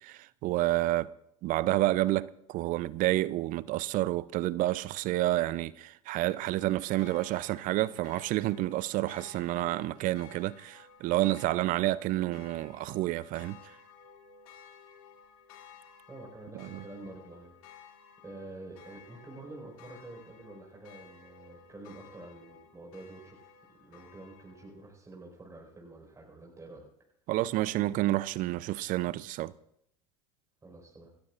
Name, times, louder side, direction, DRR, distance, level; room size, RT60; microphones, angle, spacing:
voice 1, 0.0-1.1 1.4-13.6 16.5-16.8 27.3-29.5, right 16 dB, 50° right, 0.5 m, -29 dB
sound 1, 6.1-24.9, left 6 dB, 75° left, 2.7 m, -55 dB
voice 2, 16.1-17.9 18.2-23.5 23.8-26.8 30.6-31.1, right 2 dB, 15° right, 4.8 m, -48 dB
27.5 x 13.0 x 2.5 m
hypercardioid pair, 90°, 18 cm